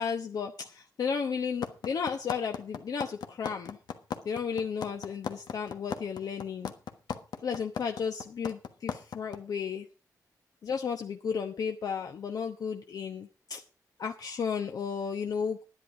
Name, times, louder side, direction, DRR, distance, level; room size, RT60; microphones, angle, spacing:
voice 1, 0.0-3.8 4.2-6.7 7.4-9.9 10.6-13.6 14.0-15.6, left 6 dB, 65° left, 4 dB, 0.9 m, -33 dB
sound 1, 1.6-9.4, left 7 dB, 90° left, 1.3 m, -35 dB
10.5 x 10.5 x 4.9 m, 0.32 s
wide cardioid pair, 125°, 7 cm